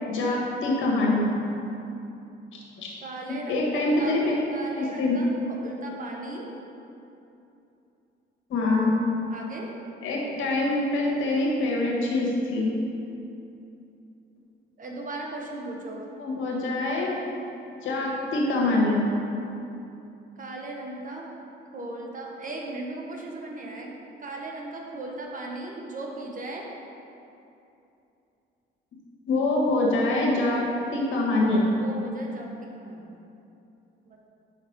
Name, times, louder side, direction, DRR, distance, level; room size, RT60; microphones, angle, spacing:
voice 1, 0.1-1.3 2.8-2.9 3.5-4.4 4.8-5.1 8.5-8.9 10.0-12.7 16.2-17.1 17.8-19.1 29.3-30.6 30.9-31.6, left 2 dB, 80° left, -3 dB, 1.4 m, -24 dB
voice 2, 3.0-4.2 4.5-6.5 9.3-9.7 14.8-16.0 20.4-21.3 21.7-23.9 24.2-26.6 31.7-33.1 34.0-34.3, right 2 dB, 40° right, -1 dB, 1.1 m, -37 dB
5.8 x 5.2 x 4.6 m, 2.8 s
cardioid pair, 90°, 20 cm